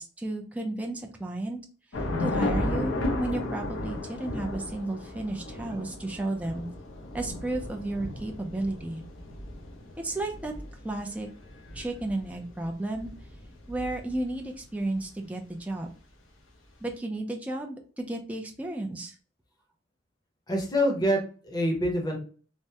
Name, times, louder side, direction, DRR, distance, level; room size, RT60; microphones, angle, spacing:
voice 1, 0.0-1.6 2.2-6.7 7.1-9.0 10.0-10.5 10.8-11.3 11.7-13.1 13.7-15.9 16.8-19.1, right 2 dB, 10° right, 1 dB, 0.4 m, -33 dB
Thunder / Rain, 1.9-14.4, left 1 dB, 90° left, 0.8 m, -34 dB
voice 2, 20.5-22.2, equal, 20° left, 1 dB, 0.7 m, -26 dB
3.3 x 2.1 x 2.7 m, 0.40 s
head